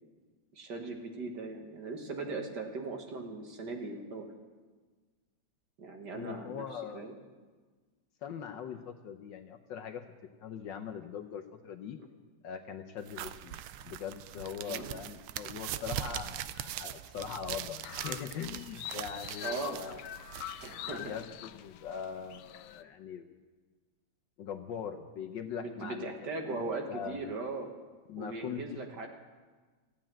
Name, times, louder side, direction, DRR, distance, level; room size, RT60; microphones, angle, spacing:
voice 1, 0.5-4.3 5.8-7.1 14.7-15.0 19.4-19.8 20.6-21.1 25.5-27.7 28.2-29.1, right 3 dB, 55° right, 3 dB, 1.9 m, -39 dB
voice 2, 6.1-7.0 8.2-10.0 10.4-12.0 12.4-13.6 13.8-20.1 20.9-23.3 24.4-26.1 26.5-27.3 28.1-28.8, left 8 dB, 65° left, 6 dB, 1.3 m, -41 dB
sound 1, 13.1-21.2, right 12 dB, 80° right, 1.5 m, -41 dB
sound 2, 17.8-22.8, left 13 dB, 90° left, 1.5 m, -44 dB
15.0 x 8.7 x 8.9 m, 1.4 s
omnidirectional pair, 2.4 m